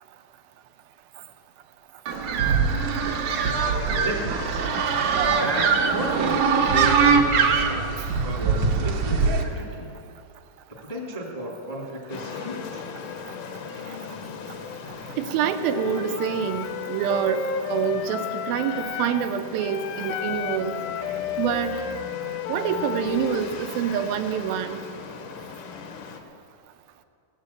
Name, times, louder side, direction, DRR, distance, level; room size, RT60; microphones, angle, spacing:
sound 1, 2.1-9.4, right 5 dB, 65° right, 2.0 m, -22 dB
voice 1, 3.9-4.4 5.4-7.9 8.2-10.0 10.8-12.8, right 1 dB, 20° left, -3 dB, 1.0 m, -33 dB
sound 2, 12.1-26.2, left 5 dB, 65° left, 2.3 m, -39 dB
voice 2, 15.2-20.8 21.4-21.8 22.5-24.8, right 9 dB, 80° right, 7 dB, 2.5 m, -26 dB
Wind instrument woodwind instrument, 15.7-19.3 19.6-23.5, left 8 dB, 85° left, 2.5 m, -32 dB
17.0 x 7.8 x 8.2 m, 2.4 s
omnidirectional pair, 4.2 m